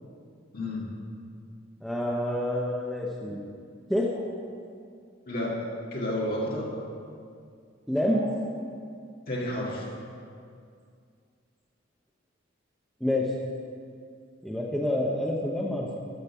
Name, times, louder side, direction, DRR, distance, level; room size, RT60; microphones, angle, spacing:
voice 1, 0.5-0.9 5.3-6.7 9.3-9.9, left 1 dB, 50° left, -3 dB, 2.1 m, -31 dB
voice 2, 1.8-3.4 3.9-4.1 7.9-8.3 13.0-13.3 14.4-16.0, left 1 dB, ahead, -3 dB, 0.8 m, -27 dB
13.0 x 5.3 x 6.9 m, 2.3 s
head